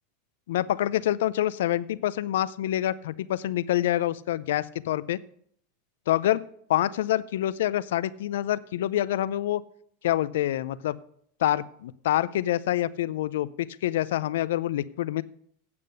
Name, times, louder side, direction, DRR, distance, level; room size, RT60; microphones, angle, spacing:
voice 1, 0.5-5.2 6.1-6.4 6.7-9.6 10.0-11.0 11.4-15.2, left 13 dB, 75° left, 19 dB, 0.5 m, -26 dB
8.8 x 8.4 x 6.5 m, 0.66 s
hypercardioid pair, 100°, 0 cm